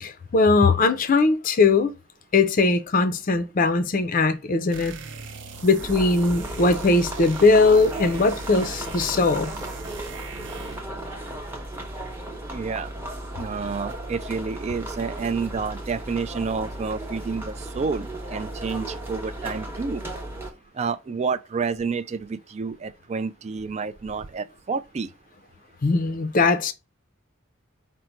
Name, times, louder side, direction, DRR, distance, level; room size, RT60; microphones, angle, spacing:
voice 1, 0.0-1.9 2.3-4.9 5.6-9.5 25.8-26.7, left 3 dB, 40° left, 0.5 m, -20 dB
sound 1, 4.7-10.9, right 4 dB, 60° right, 0.7 m, -40 dB
sound 2, 5.8-20.5, right 1 dB, 10° right, 0.8 m, -35 dB
voice 2, 12.5-12.9 13.4-20.0 20.7-25.1, right 5 dB, 30° right, 0.3 m, -29 dB
5.1 x 2.1 x 4.4 m
head